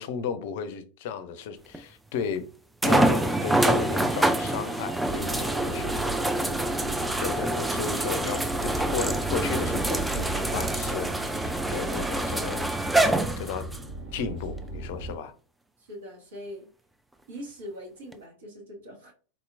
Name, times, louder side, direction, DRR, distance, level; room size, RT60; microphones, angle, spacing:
voice 1, 0.0-2.4 2.8-5.9 7.2-12.7 13.4-13.7 14.1-15.3, left 6 dB, 50° left, 0.5 m, -34 dB
sound 1, 1.7-1.8 2.8-13.8 14.6-14.7 18.1-18.2, right 1 dB, 5° right, 0.3 m, -26 dB
sound 2, 5.0-15.1, right 2 dB, 35° right, 1.2 m, -36 dB
voice 2, 15.8-16.7 17.3-19.1, equal, 60° right, 1.5 m, -42 dB
3.9 x 2.8 x 2.5 m
figure-of-eight pair, 90°, 0 cm